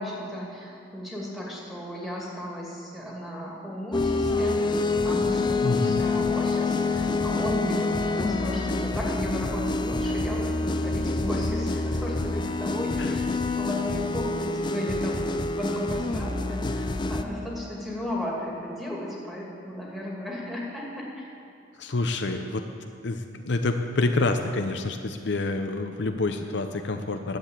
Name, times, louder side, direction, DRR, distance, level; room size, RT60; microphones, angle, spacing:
voice 1, 0.0-21.3, left 1 dB, ahead, -5 dB, 2.3 m, -35 dB
sound 1, 3.9-17.2, left 3 dB, 25° left, 0.4 m, -27 dB
voice 2, 5.6-6.0 13.0-13.1 16.6-16.7 21.8-22.6 23.0-27.4, left 2 dB, 65° left, 6 dB, 0.7 m, -27 dB
11.0 x 7.8 x 8.7 m, 2.4 s
head